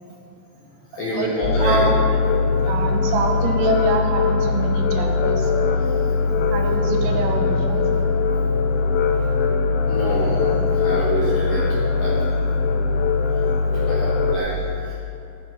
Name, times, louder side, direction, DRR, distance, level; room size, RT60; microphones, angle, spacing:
voice 1, 0.9-1.9 6.1-6.5 9.1-9.3 9.8-11.7 11.9-12.1 13.7-14.6 14.8-14.9, equal, 70° left, -6 dB, 2.2 m, -27 dB
sound 1, 1.4-14.4, left 4 dB, 85° left, 2.4 m, -21 dB
voice 2, 1.6-2.0 2.6-5.5 6.5-8.0, right 4 dB, 80° right, 2 dB, 3.7 m, -25 dB
14.5 x 10.5 x 3.9 m, 2.7 s
omnidirectional pair, 6.0 m